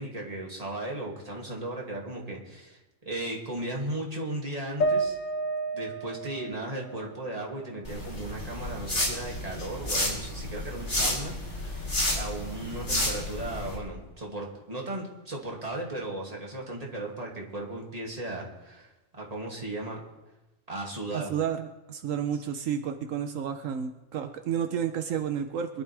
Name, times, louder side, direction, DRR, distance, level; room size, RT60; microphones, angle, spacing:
voice 1, 0.0-2.8 3.0-5.2 5.7-11.9 12.1-20.0 20.7-21.3, right 1 dB, 30° right, -2 dB, 2.5 m, -36 dB
sound 1, 4.8-8.2 8.6-9.6, right 2 dB, 75° left, 1.4 m, -33 dB
sound 2, 7.8-13.8, left 1 dB, 60° left, 3.7 m, -31 dB
voice 2, 21.1-25.8, right 8 dB, 80° right, 7 dB, 1.1 m, -31 dB
23.5 x 11.5 x 3.4 m, 1.0 s
omnidirectional pair, 1.4 m